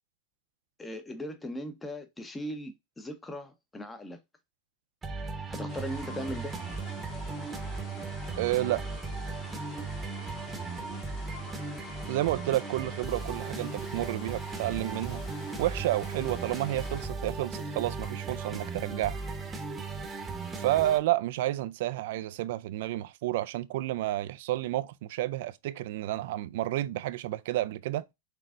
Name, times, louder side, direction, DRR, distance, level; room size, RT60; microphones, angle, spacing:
voice 1, 0.8-4.2 5.5-6.6 22.1-22.2, equal, 10° left, 1.0 m, -38 dB
sound 1, 5.0-21.0, right 4 dB, 15° right, 1.1 m, -37 dB
sound 2, 5.7-17.1, left 4 dB, 40° left, 2.2 m, -48 dB
voice 2, 8.4-8.8 12.1-15.2 15.6-19.2 20.6-28.0, right 15 dB, 65° right, 0.5 m, -30 dB
5.9 x 3.3 x 2.5 m
hypercardioid pair, 115°, 0 cm